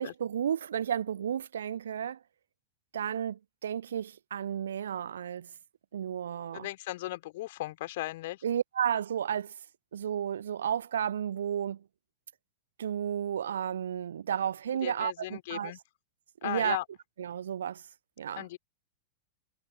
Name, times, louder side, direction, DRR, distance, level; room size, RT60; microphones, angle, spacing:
voice 1, 0.0-2.2 2.9-5.5 5.9-6.7 8.4-9.5 9.9-11.8 12.8-15.7 16.4-16.8 17.2-17.8 18.2-18.4, right 9 dB, 65° right, 1.0 m, -32 dB
voice 2, 6.5-8.4 14.8-15.8 16.4-16.9 18.4-18.6, left 17 dB, 55° left, 3.6 m, -36 dB
figure-of-eight pair, 90°, 0 cm